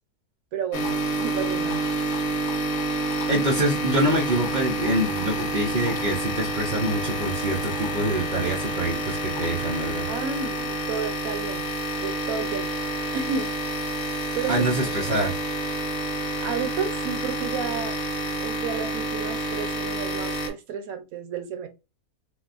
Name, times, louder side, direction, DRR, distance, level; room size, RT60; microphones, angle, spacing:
voice 1, 0.5-1.8 10.1-11.7 12.0-12.7 13.1-13.5 14.3-15.2 16.4-17.9 18.4-21.7, right 6 dB, 70° right, 1.1 m, -32 dB
sound 1, 0.7-20.5, right 1 dB, 70° left, 1.2 m, -28 dB
voice 2, 3.3-10.1 14.5-15.3, right 1 dB, 55° right, 0.5 m, -25 dB
3.8 x 2.2 x 2.4 m
omnidirectional pair, 1.6 m